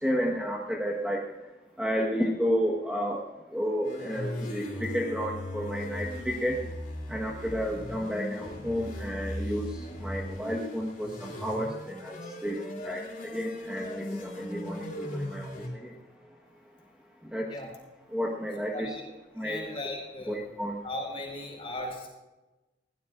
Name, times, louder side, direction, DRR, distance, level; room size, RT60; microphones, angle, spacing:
voice 1, 0.0-1.2 1.8-3.2 3.5-6.6 7.1-9.7 10.0-15.5 15.8-15.9 17.3-17.5 18.1-18.9 19.4-19.6 20.3-20.8, equal, 5° right, -2 dB, 1.3 m, -31 dB
sound 1, 3.8-15.7, left 1 dB, 50° left, 4.6 m, -38 dB
voice 2, 17.4-17.7 18.7-19.0 19.4-20.4 20.8-22.1, left 1 dB, 35° left, 0 dB, 5.2 m, -37 dB
21.5 x 17.0 x 2.5 m, 1.1 s
head